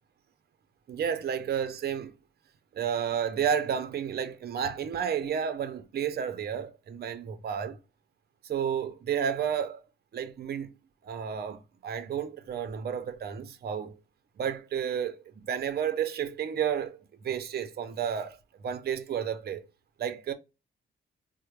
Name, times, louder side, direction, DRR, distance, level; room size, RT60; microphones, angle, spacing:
voice 1, 0.9-2.1 2.7-7.8 8.4-9.8 10.1-10.7 11.0-14.0 14.4-18.4 18.6-19.6 20.0-20.3, right 8 dB, 50° right, 0.5 m, -31 dB
3.9 x 2.0 x 3.1 m
wide cardioid pair, 130°, 21 cm